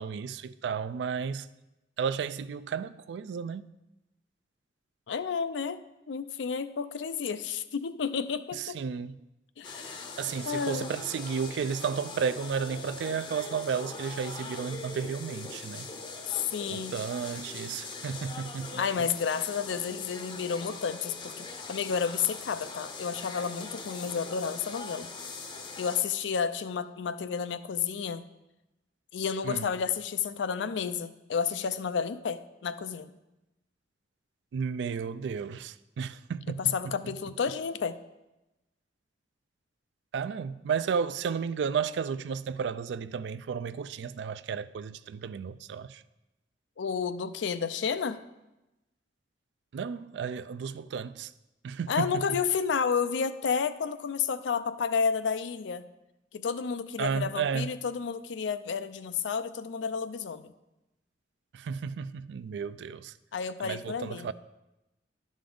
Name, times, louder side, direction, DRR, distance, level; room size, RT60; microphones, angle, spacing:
voice 1, 0.0-1.5 2.0-3.7 8.5-9.2 10.2-15.9 16.7-18.8 29.4-29.7 34.5-36.9 40.1-46.0 49.7-51.3 51.6-52.2 57.0-57.7 61.5-63.1 63.6-64.3, right 6 dB, 70° right, 0.3 m, -33 dB
voice 2, 5.1-5.8 6.1-8.8 9.6-10.1 10.4-10.9 16.3-17.0 18.8-25.1 25.8-28.3 29.1-33.1 36.6-38.0 46.8-48.2 51.9-55.8 56.3-60.5 63.3-64.3, left 6 dB, 80° left, 0.4 m, -31 dB
sound 1, 9.6-26.0, left 3 dB, 25° left, 0.6 m, -42 dB
11.5 x 5.1 x 3.8 m
head